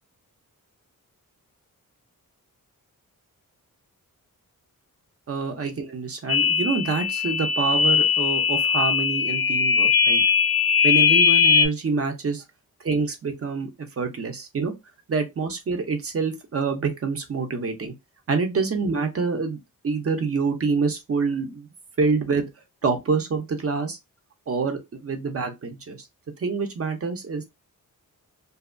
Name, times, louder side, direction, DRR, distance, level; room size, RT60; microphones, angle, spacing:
voice 1, 5.3-10.2 10.8-12.4 12.8-14.7 15.1-17.9 18.3-19.6 19.8-21.7 22.0-22.5 22.8-24.0 24.5-26.1 26.4-27.4, right 4 dB, 40° right, 0.6 m, -26 dB
sound 1, 6.3-11.7, left 6 dB, 80° left, 0.7 m, -20 dB
2.7 x 2.2 x 2.5 m
wide cardioid pair, 130°, 35 cm